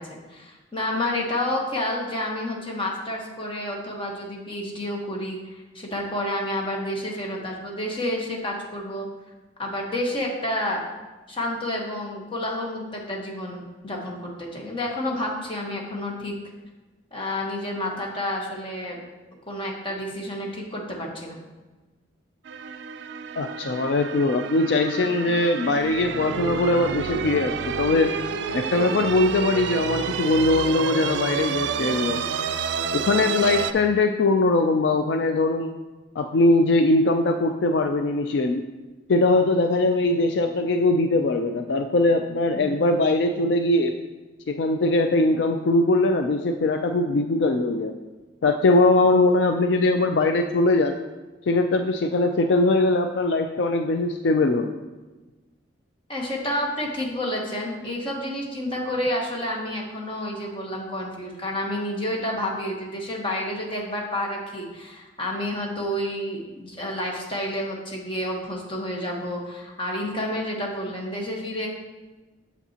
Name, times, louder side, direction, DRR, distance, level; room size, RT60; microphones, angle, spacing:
voice 1, 0.0-9.1 9.6-10.8 11.3-16.4 17.1-19.0 19.5-21.4 42.5-42.8 56.1-71.7, left 1 dB, 25° left, -1 dB, 1.1 m, -30 dB
sound 1, 22.5-33.7, right 6 dB, 65° right, 0.3 m, -29 dB
voice 2, 23.4-28.1 28.5-32.2 32.9-35.7 36.2-38.6 39.1-44.0 44.5-47.9 48.4-51.0 51.5-54.7, left 2 dB, 65° left, 6 dB, 0.4 m, -21 dB
8.2 x 6.9 x 2.8 m, 1.2 s
head